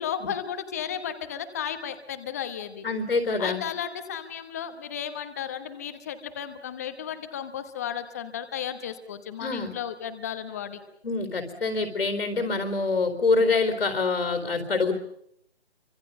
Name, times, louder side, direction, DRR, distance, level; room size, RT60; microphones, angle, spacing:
voice 1, 0.0-2.9 3.4-10.8, left 9 dB, 15° left, 10 dB, 1.1 m, -34 dB
voice 2, 2.8-3.6 9.4-9.7 11.0-14.9, left 3 dB, 70° left, 7 dB, 4.2 m, -25 dB
29.0 x 25.5 x 5.5 m, 0.71 s
hypercardioid pair, 165°, 32 cm